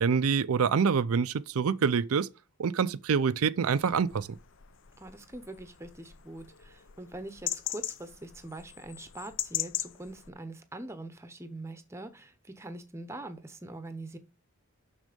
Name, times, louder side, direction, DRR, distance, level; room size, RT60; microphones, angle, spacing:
voice 1, 0.0-2.3 2.6-4.3, right 6 dB, 75° right, 0.5 m, -26 dB
sound 1, 3.7-10.3, left 13 dB, 55° left, 0.6 m, -39 dB
voice 2, 5.0-14.2, right 2 dB, 10° right, 0.8 m, -43 dB
6.3 x 6.3 x 5.1 m
head